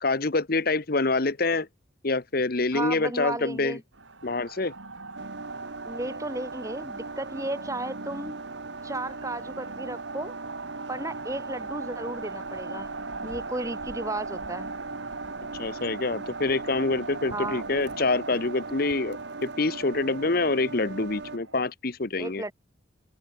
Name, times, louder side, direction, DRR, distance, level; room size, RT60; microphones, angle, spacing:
voice 1, 0.0-1.7 2.0-3.8 4.2-4.7 15.6-22.4, left 3 dB, 50° left, 1.1 m, -26 dB
voice 2, 2.7-3.8 5.8-8.4 8.8-10.4 10.9-12.9 13.2-14.7 17.3-17.6 22.2-22.5, right 2 dB, 15° right, 2.4 m, -34 dB
sound 1, 3.9-21.6, right 3 dB, 85° right, 7.8 m, -40 dB
sound 2, 5.2-21.4, right 3 dB, 60° right, 0.9 m, -40 dB
open air
head